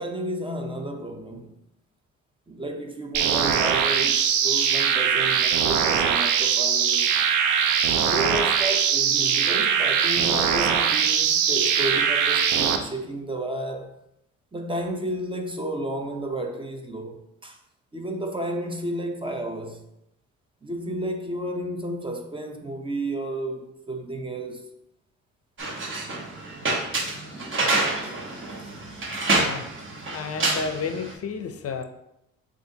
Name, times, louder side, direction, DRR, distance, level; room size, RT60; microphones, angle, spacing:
voice 1, 0.0-1.5 2.5-7.1 8.0-14.0 14.5-17.6 17.9-19.8 20.6-24.7 27.3-27.6 28.2-28.5 29.0-29.1, right 1 dB, 15° right, 0.6 m, -32 dB
sound 1, 3.1-12.8, right 7 dB, 80° right, 0.5 m, -21 dB
sound 2, 25.6-31.1, right 2 dB, 40° right, 1.2 m, -27 dB
voice 2, 29.3-29.7 30.1-31.8, left 5 dB, 50° left, 0.5 m, -31 dB
7.4 x 2.5 x 2.7 m
cardioid pair, 90°, 30 cm